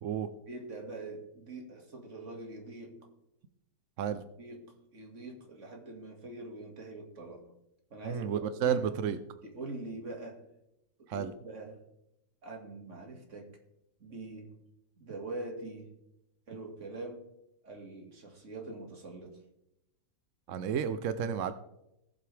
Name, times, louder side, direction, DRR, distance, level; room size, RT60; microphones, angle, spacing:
voice 1, 0.5-3.0 4.4-7.5 7.9-9.0 9.4-10.4 11.0-11.8 12.4-13.5 14.0-14.6 15.0-15.9 16.5-17.3 17.6-19.4, right 2 dB, 40° right, 2 dB, 2.3 m, -44 dB
voice 2, 8.0-9.2 11.1-11.3 20.5-21.5, right 8 dB, 65° right, 11 dB, 0.7 m, -31 dB
19.0 x 7.7 x 3.4 m, 0.85 s
omnidirectional pair, 2.0 m